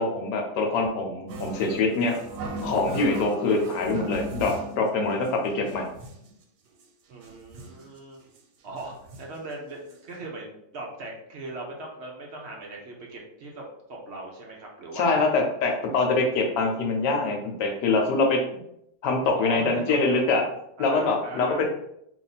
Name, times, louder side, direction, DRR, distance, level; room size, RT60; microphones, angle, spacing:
voice 1, 0.0-2.2 2.6-5.9 14.9-18.4 19.0-20.4 20.8-21.7, left 3 dB, 75° left, 2 dB, 1.3 m, -24 dB
sound 1, 1.3-4.9 5.3-5.4 5.6-6.3 6.8-6.9 7.1-7.9 8.4-8.5 8.8-9.4 9.9-10.0 10.2-10.3, right 2 dB, 75° right, 1.2 m, -37 dB
voice 2, 7.1-8.3 8.6-15.2 19.3-20.2 20.8-21.6, right 2 dB, 60° right, -1 dB, 0.7 m, -39 dB
2.9 x 2.6 x 3.9 m, 0.77 s
omnidirectional pair, 1.9 m